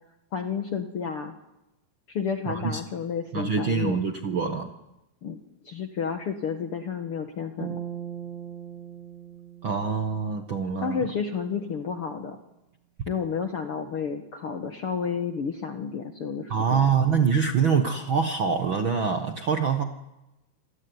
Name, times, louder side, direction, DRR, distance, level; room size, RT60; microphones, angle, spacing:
voice 1, 0.3-1.3 2.1-4.0 5.2-5.4 5.6-7.8 10.8-12.4 13.1-16.9, left 6 dB, 55° left, 7 dB, 1.6 m, -31 dB
voice 2, 2.5-2.8 3.3-4.7 9.6-11.0 16.5-19.8, right 6 dB, 55° right, 7 dB, 1.4 m, -25 dB
sound 1, 7.6-11.0, right 10 dB, 75° right, 3.4 m, -39 dB
27.5 x 20.5 x 9.7 m, 0.97 s
omnidirectional pair, 4.3 m